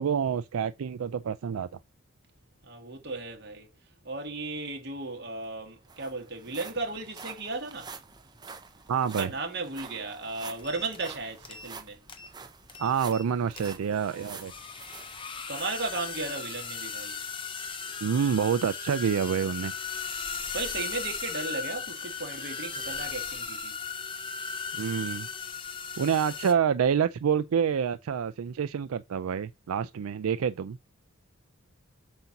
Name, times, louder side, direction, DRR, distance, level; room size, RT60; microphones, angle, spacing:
voice 1, 0.0-1.7 8.9-9.3 12.8-14.5 18.0-19.7 24.7-25.3 26.0-30.8, right 7 dB, 85° right, 0.4 m, -27 dB
voice 2, 2.6-3.7 4.0-7.9 9.2-12.0 15.5-17.2 20.5-23.7, right 3 dB, 50° right, 1.8 m, -35 dB
sound 1, 5.1-5.2 5.4-16.3 16.8-16.9 17.5-17.6, right 5 dB, 20° right, 0.7 m, -47 dB
sound 2, 10.6-11.1 11.4-11.8 12.1-12.3 12.7-13.3 13.6-26.5, left 6 dB, 25° left, 0.7 m, -37 dB
7.7 x 2.7 x 5.8 m
head